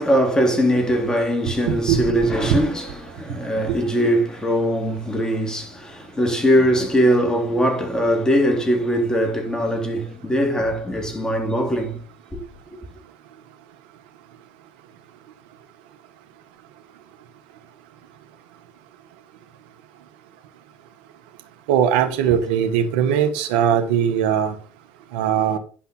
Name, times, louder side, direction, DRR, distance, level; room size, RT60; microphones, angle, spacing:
voice 1, 0.0-12.0 12.3-12.4 22.3-22.4, equal, 15° left, 3.5 m, -21 dB
voice 2, 1.7-2.2 2.5-2.6 3.7-3.8 21.7-24.5 25.1-25.6, right 9 dB, 85° right, 1.5 m, -20 dB
11.0 x 5.8 x 5.7 m
supercardioid pair, 80°, 5 cm